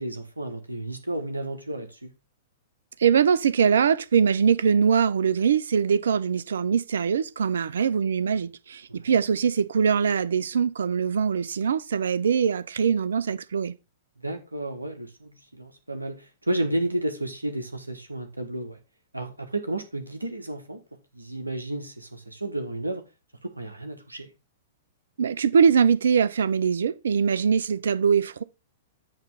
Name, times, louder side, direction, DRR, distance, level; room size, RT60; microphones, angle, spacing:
voice 1, 0.0-2.1 8.9-9.1 14.2-18.8 19.1-20.8 21.1-23.0 23.4-24.3, right 1 dB, 85° right, 1.2 m, -32 dB
voice 2, 3.0-13.7 25.2-28.4, right 7 dB, 65° right, 0.5 m, -22 dB
8.9 x 3.2 x 5.4 m
figure-of-eight pair, 105°, 0 cm